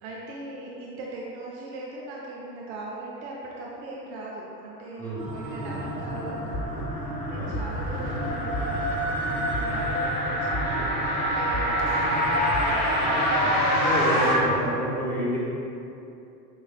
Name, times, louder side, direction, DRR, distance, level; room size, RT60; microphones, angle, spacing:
voice 1, 0.0-8.9 9.2-13.6, right 2 dB, 45° right, -4 dB, 0.6 m, -39 dB
sound 1, 5.2-14.7, right 1 dB, 70° right, 0.9 m, -31 dB
sound 2, 6.0-14.3, left 1 dB, 60° left, 1.4 m, -28 dB
sound 3, 6.1-12.6, equal, 35° left, 0.5 m, -35 dB
voice 2, 13.8-15.4, right 1 dB, 5° left, -9 dB, 0.8 m, -28 dB
5.3 x 3.1 x 2.3 m, 2.7 s
figure-of-eight pair, 75°, 50 cm